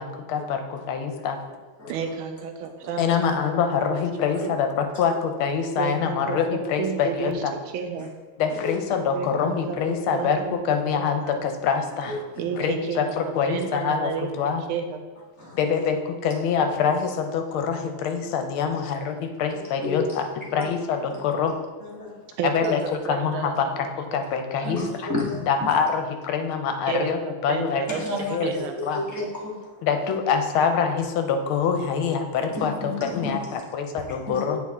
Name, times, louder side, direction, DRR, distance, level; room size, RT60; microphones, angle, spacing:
voice 1, 0.0-1.4 3.0-7.5 8.4-12.2 12.6-14.6 15.6-20.3 20.5-21.5 22.4-25.1 25.5-27.8 28.3-28.5 28.8-29.0 29.8-34.6, left 6 dB, 85° left, 6 dB, 1.5 m, -25 dB
voice 2, 1.9-3.5 3.9-4.0 4.4-4.5 5.8-7.4 7.7-8.1 9.1-11.3 12.4-13.0 13.5-14.3 14.7-15.0 22.4-24.2 24.6-24.7 26.9-28.2 28.4-28.7, right 6 dB, 75° right, 6 dB, 1.4 m, -31 dB
voice 3, 19.5-20.0 20.5-20.6 21.8-22.3 24.6-25.7 28.0-28.4 28.8-29.9 32.5-33.6 34.3-34.4, left 2 dB, 15° right, -6 dB, 0.5 m, -32 dB
8.3 x 4.2 x 3.6 m, 1.3 s
omnidirectional pair, 2.3 m